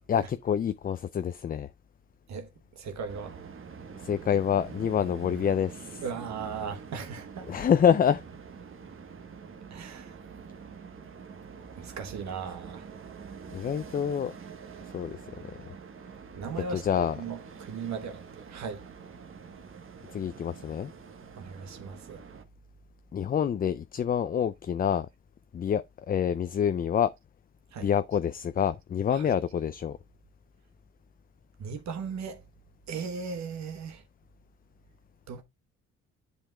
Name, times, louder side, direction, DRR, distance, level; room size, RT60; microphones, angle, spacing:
voice 1, 0.1-1.7 4.0-6.0 7.5-8.2 13.5-14.3 14.9-15.2 15.4-15.6 16.7-17.2 20.1-20.9 23.1-25.1 25.5-27.1 27.8-30.0, left 8 dB, 30° left, 0.4 m, -27 dB
voice 2, 2.3-3.4 6.0-7.6 9.7-10.2 11.8-12.9 16.3-18.8 21.4-22.2 27.7-27.9 29.1-29.3 31.6-32.4 32.9-34.0 35.3-35.4, right 5 dB, 65° right, 1.1 m, -37 dB
sound 1, 3.1-22.5, right 6 dB, 45° right, 1.2 m, -46 dB
10.0 x 5.5 x 2.3 m
cardioid pair, 90°, 30 cm